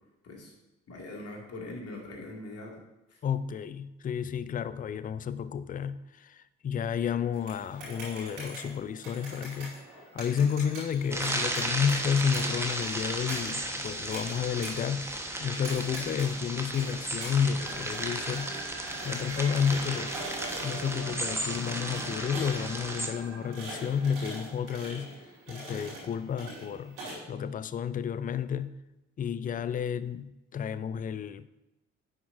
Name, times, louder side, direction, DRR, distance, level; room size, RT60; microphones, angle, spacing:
voice 1, 0.2-0.5 0.9-2.8 3.1-3.2, left 2 dB, 45° left, 2.5 m, -42 dB
voice 2, 3.2-9.7 10.1-18.6 19.0-20.1 20.6-25.1 25.5-28.8 29.2-31.5, left 7 dB, 25° left, 0.4 m, -31 dB
sound 1, 7.3-27.1, right 1 dB, 85° right, 2.8 m, -44 dB
sound 2, 11.1-23.1, right 1 dB, 5° right, 1.3 m, -34 dB
sound 3, 17.6-24.7, right 3 dB, 50° right, 1.6 m, -44 dB
10.0 x 7.6 x 2.7 m
figure-of-eight pair, 45°, 34 cm